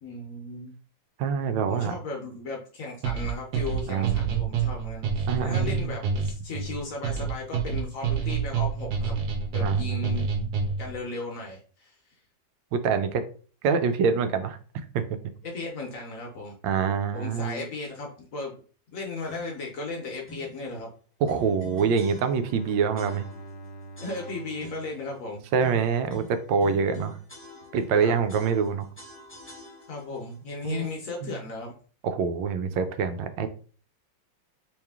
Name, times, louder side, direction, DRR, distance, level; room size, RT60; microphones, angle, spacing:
voice 1, 0.0-0.7 1.7-9.1 9.5-10.3 10.8-11.9 15.4-16.6 17.1-18.5 18.9-20.9 24.0-25.4 28.0-28.2 29.9-31.7, left 3 dB, 55° left, 1 dB, 1.0 m, -36 dB
voice 2, 1.2-1.9 3.9-4.4 5.3-5.9 9.6-10.5 12.7-13.2 13.6-14.6 14.9-15.0 16.6-17.7 21.2-23.3 25.5-27.2 27.7-28.9 30.6-30.9 31.2-31.4 32.0-33.5, right 6 dB, 90° right, 9 dB, 1.3 m, -25 dB
sound 1, 3.0-11.0, right 6 dB, 70° right, 1.3 m, -28 dB
sound 2, 19.3-19.7 20.3-20.6 21.3-22.6 23.0-23.6 24.0-25.0 25.6-28.0 28.3-30.2, equal, 10° left, 0.7 m, -46 dB
Bowed string instrument, 22.2-26.0, right 2 dB, 85° left, 1.3 m, -45 dB
3.2 x 3.0 x 3.5 m, 0.41 s
omnidirectional pair, 2.0 m